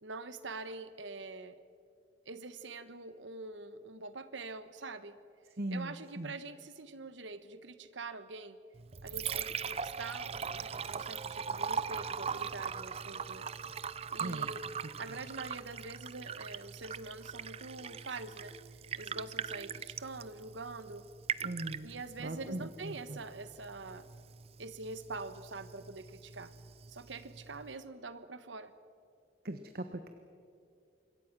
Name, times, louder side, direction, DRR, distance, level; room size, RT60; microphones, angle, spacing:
voice 1, 0.0-1.5 2.2-5.2 5.7-8.6 9.0-13.5 14.1-14.6 15.0-18.6 18.9-21.1 21.8-24.0 24.6-26.5 26.9-28.7, right 3 dB, 80° right, 12 dB, 1.2 m, -45 dB
voice 2, 5.6-6.4 14.2-14.5 15.1-15.2 21.4-21.9 22.2-23.2 29.4-30.1, right 1 dB, 50° right, 8 dB, 1.0 m, -39 dB
Liquid, 8.7-27.7, right 6 dB, 30° right, 0.4 m, -41 dB
25.5 x 22.0 x 6.1 m, 2.4 s
head